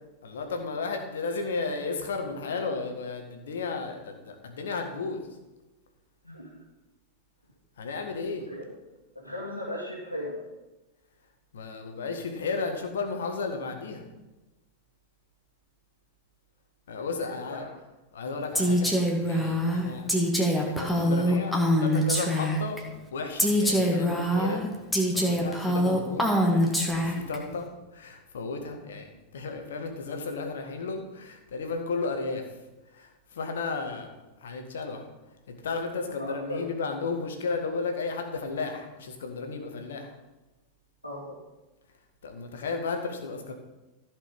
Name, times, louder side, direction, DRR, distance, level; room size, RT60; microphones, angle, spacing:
voice 1, 0.2-5.2 7.8-8.5 11.5-14.0 16.9-17.7 18.1-18.9 19.2-20.1 20.6-24.7 25.1-29.1 29.3-32.5 32.9-35.1 35.5-40.1 42.2-43.5, left 4 dB, 65° left, 5 dB, 1.7 m, -34 dB
voice 2, 6.2-6.6 8.5-8.6 9.1-10.4 17.5-17.7 36.1-36.6 41.0-41.3, left 1 dB, 85° left, -7 dB, 2.2 m, -37 dB
Female speech woman speaking, 18.5-22.8 23.4-27.4, equal, 5° left, 1.9 m, -24 dB
14.5 x 5.3 x 5.4 m, 1.1 s
figure-of-eight pair, 90°, 0 cm